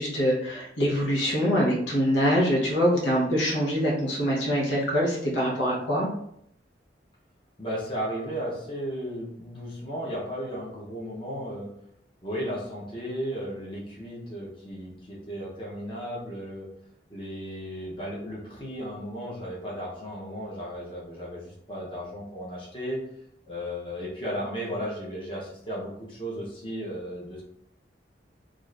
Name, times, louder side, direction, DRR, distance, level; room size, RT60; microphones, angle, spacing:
voice 1, 0.0-6.1, equal, 90° left, -4 dB, 0.9 m, -24 dB
voice 2, 7.6-11.7 12.2-16.7 17.1-23.0 23.5-27.4, equal, 30° left, -4 dB, 0.7 m, -35 dB
2.5 x 2.4 x 3.2 m, 0.72 s
head